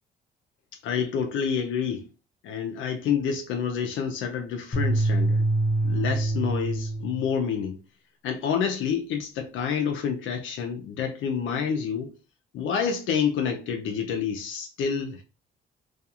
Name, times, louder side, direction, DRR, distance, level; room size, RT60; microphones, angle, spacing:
voice 1, 0.8-2.1 2.4-5.4 5.8-7.8 8.2-12.1 12.5-15.2, left 7 dB, 75° left, 0.5 m, -28 dB
sound 1, 4.7-7.2, right 2 dB, 40° left, 0.8 m, -25 dB
2.3 x 2.3 x 2.7 m
cardioid pair, 90°, 20 cm